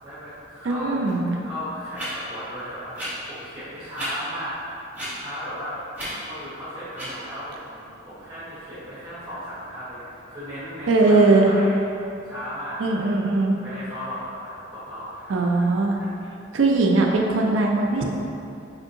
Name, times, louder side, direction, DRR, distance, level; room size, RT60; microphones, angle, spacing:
voice 1, 0.0-1.1 1.4-4.8 5.2-5.8 6.0-11.8 12.2-13.1 13.6-15.7 16.0-16.1, equal, 30° right, -15 dB, 1.2 m, -36 dB
voice 2, 0.6-1.3 10.9-11.5 12.8-13.6 15.3-16.0 16.5-18.0, right 3 dB, 85° right, 0 dB, 0.4 m, -19 dB
sound 1, 1.1-1.2 1.9-2.1 2.9-3.1 3.9-4.1 4.9-5.1 5.9-6.1 6.9-7.1, equal, 10° right, 1.1 m, -32 dB
5.0 x 2.7 x 2.6 m, 2.6 s
head